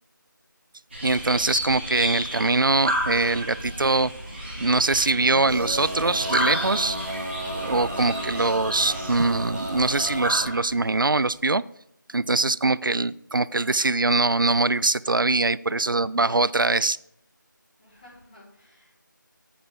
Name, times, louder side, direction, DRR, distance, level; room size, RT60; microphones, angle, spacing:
sound 1, 0.9-11.2, equal, 35° right, 2.4 m, -32 dB
voice 1, 1.0-4.1 4.6-7.0 7.6-11.6 12.1-17.0, right 3 dB, 80° right, 0.4 m, -23 dB
Male singing, 5.2-10.5, right 1 dB, 60° right, 1.6 m, -33 dB
voice 2, 12.1-12.4 15.6-16.3 17.8-18.9, left 1 dB, 25° left, 4.3 m, -53 dB
9.6 x 8.0 x 3.7 m
figure-of-eight pair, 165°, 11 cm